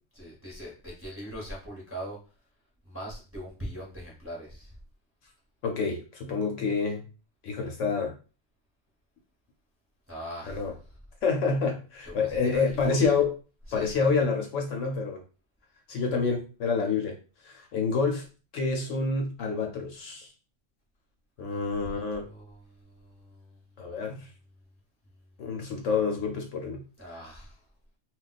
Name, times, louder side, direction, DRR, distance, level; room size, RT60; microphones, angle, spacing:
voice 1, 0.2-2.2 2.9-4.7 10.1-10.6 12.2-13.1 13.7-14.1 21.5-22.6 23.3-23.4 27.0-27.5, equal, 10° right, -3 dB, 0.7 m, -41 dB
voice 2, 5.6-7.0 7.4-8.1 10.4-10.7 11.2-13.4 13.7-15.2 15.9-17.2 17.4-18.2 18.5-20.3 21.4-22.3 23.8-24.3 25.4-26.8 27.1-27.2, left 4 dB, 65° left, 2 dB, 0.9 m, -28 dB
2.3 x 2.3 x 3.9 m, 0.35 s
omnidirectional pair, 1.4 m